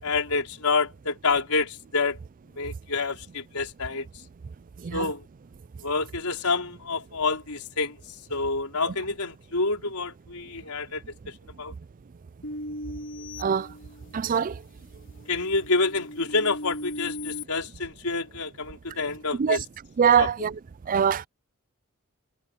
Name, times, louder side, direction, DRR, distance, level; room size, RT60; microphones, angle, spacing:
voice 1, 0.0-2.2 2.6-4.1 4.9-5.2 5.8-8.0 8.3-11.7 15.3-19.6 20.2-20.3, left 3 dB, 85° left, 4.3 m, -28 dB
sound 1, 12.4-14.4 14.9-17.4, left 1 dB, 60° left, 4.8 m, -38 dB
voice 2, 14.1-14.5 19.4-19.6 20.0-20.6 20.9-21.3, right 7 dB, 40° right, 0.4 m, -22 dB
head